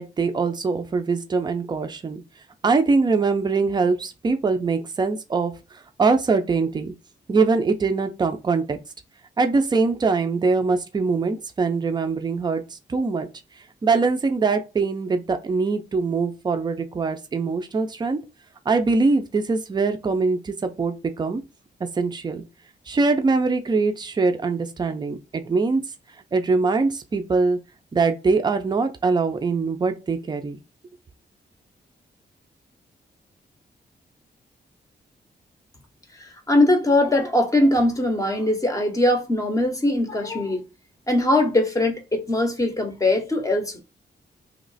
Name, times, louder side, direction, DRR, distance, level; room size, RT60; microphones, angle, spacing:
voice 1, 0.0-2.2 2.6-5.5 6.0-6.9 7.3-8.8 9.4-13.3 13.8-18.2 18.7-21.4 22.0-22.4 22.9-25.8 26.3-27.6 27.9-30.6, right 4 dB, 25° right, 0.5 m, -22 dB
voice 2, 36.5-40.6 41.1-43.8, left 1 dB, 20° left, 0.7 m, -21 dB
3.1 x 2.8 x 4.0 m
wide cardioid pair, 170°, 18 cm